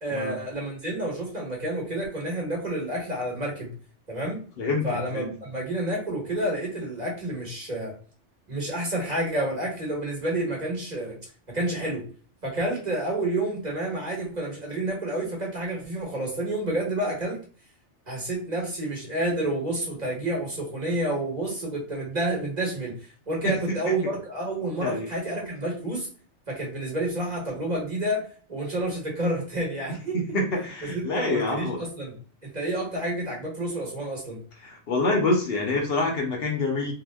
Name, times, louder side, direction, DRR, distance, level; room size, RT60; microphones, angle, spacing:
voice 1, 0.0-3.7 4.1-4.4 4.8-7.9 8.5-11.2 11.5-12.0 12.4-17.4 18.1-22.9 23.3-26.1 26.5-30.2 30.9-32.2 32.4-34.4, right 1 dB, 40° right, -3 dB, 1.3 m, -29 dB
voice 2, 4.6-5.2 23.4-23.6 23.8-23.9 24.8-25.1 30.1-31.8 34.6-36.9, left 2 dB, 65° left, 1 dB, 0.8 m, -26 dB
2.8 x 2.0 x 3.3 m, 0.41 s
omnidirectional pair, 1.2 m